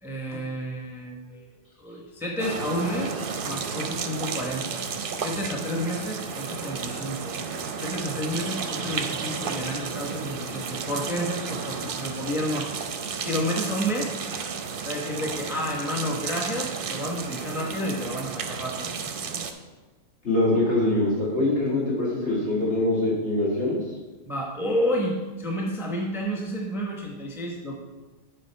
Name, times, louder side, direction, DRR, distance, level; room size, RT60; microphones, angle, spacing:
voice 1, 0.0-1.5 1.8-4.8 5.2-7.4 7.8-12.7 13.2-14.1 14.8-18.9 24.3-27.7, equal, ahead, -1 dB, 0.8 m, -30 dB
sound 1, 2.4-19.5, right 5 dB, 55° right, 0.7 m, -32 dB
voice 2, 20.2-23.8, left 2 dB, 65° left, -6 dB, 2.8 m, -23 dB
10.0 x 4.6 x 4.5 m, 1.3 s
omnidirectional pair, 1.3 m